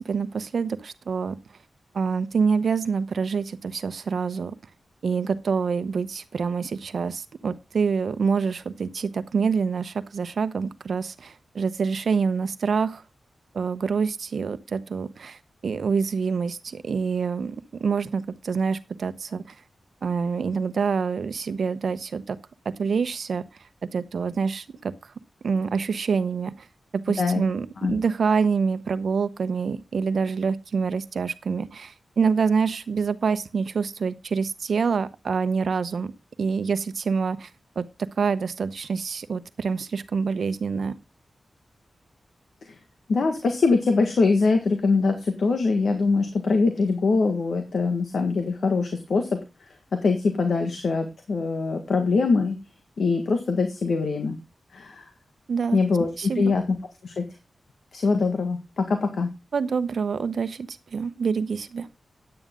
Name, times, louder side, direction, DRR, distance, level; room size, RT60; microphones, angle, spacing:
voice 1, 0.0-1.4 1.9-4.5 5.0-13.0 13.5-17.5 17.8-19.5 20.0-22.4 22.8-23.4 23.9-24.9 25.4-26.7 27.1-36.1 36.4-37.5 37.8-37.9 38.2-41.0 55.5-55.8 56.2-56.5 59.5-61.9, right 5 dB, 75° right, 12 dB, 0.9 m, -26 dB
voice 2, 43.1-49.4 49.9-52.6 53.0-54.4 54.7-55.1 55.7-56.1 56.4-56.8 57.0-57.2 57.9-59.3, left 4 dB, 75° left, 6 dB, 1.6 m, -23 dB
9.8 x 9.2 x 3.7 m, 0.26 s
cardioid pair, 60°, 0 cm